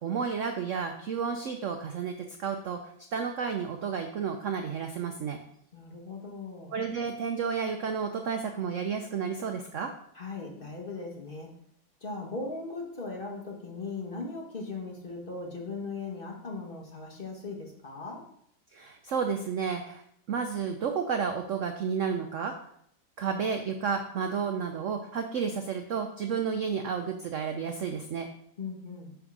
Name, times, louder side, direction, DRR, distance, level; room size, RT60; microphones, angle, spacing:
voice 1, 0.0-2.1 2.4-5.4 6.7-9.9 18.7-20.0 20.3-22.5 23.2-28.3, right 6 dB, 75° right, 5 dB, 0.7 m, -31 dB
voice 2, 5.7-6.7 10.1-11.5 12.0-18.2 28.6-29.1, left 3 dB, 30° left, 0 dB, 1.2 m, -38 dB
8.8 x 3.6 x 6.0 m, 0.69 s
omnidirectional pair, 2.1 m